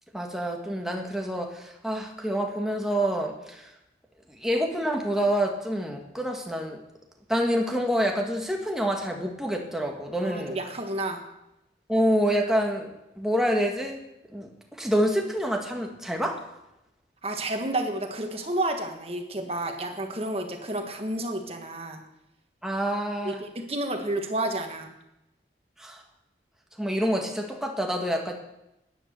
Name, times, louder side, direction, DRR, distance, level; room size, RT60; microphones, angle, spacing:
voice 1, 0.1-3.7 4.3-6.8 7.3-10.6 11.9-14.0 14.3-14.5 14.8-16.4 22.6-23.4 25.8-26.0 26.8-28.3, equal, 5° right, 1 dB, 1.5 m, -27 dB
voice 2, 10.2-11.2 17.2-22.0 23.2-24.9, right 1 dB, 35° right, 4 dB, 1.6 m, -30 dB
10.0 x 10.0 x 6.7 m, 0.89 s
head